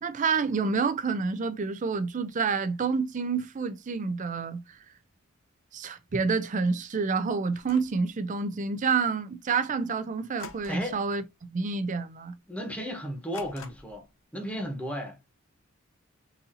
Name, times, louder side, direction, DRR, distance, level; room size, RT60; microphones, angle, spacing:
voice 1, 0.0-4.8 5.7-11.2 11.5-12.3, right 5 dB, 35° right, 0.4 m, -28 dB
sound 1, 7.5-8.0 10.4-11.0 11.3-11.7 12.1-12.2 13.3-14.1, left 4 dB, 80° left, 0.7 m, -46 dB
voice 2, 10.7-11.0 12.5-14.1 14.3-15.3, equal, 5° left, 1.0 m, -34 dB
4.1 x 2.7 x 2.6 m
head